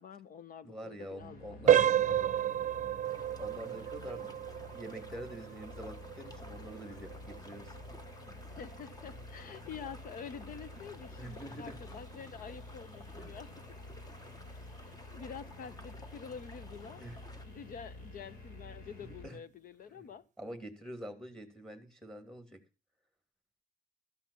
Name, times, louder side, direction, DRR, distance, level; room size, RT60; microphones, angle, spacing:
voice 1, 0.0-1.8 2.1-2.2 4.0-4.3 8.3-13.5 14.5-17.0 17.4-20.2, left 6 dB, 70° left, 1.0 m, -48 dB
voice 2, 0.6-2.5 3.4-4.2 4.7-7.8 11.2-12.0 13.1-13.4 17.0-17.2 19.0-19.4 19.9-20.1 20.4-22.6, equal, 5° left, 2.9 m, -46 dB
sound 1, 1.2-19.3, left 2 dB, 85° left, 5.1 m, -50 dB
sound 2, 1.7-12.3 12.7-12.9 13.5-13.6 14.1-14.3, right 10 dB, 55° right, 0.6 m, -33 dB
sound 3, 3.0-17.5, left 1 dB, 25° left, 1.6 m, -55 dB
14.5 x 5.9 x 8.6 m
cardioid pair, 115°, 15 cm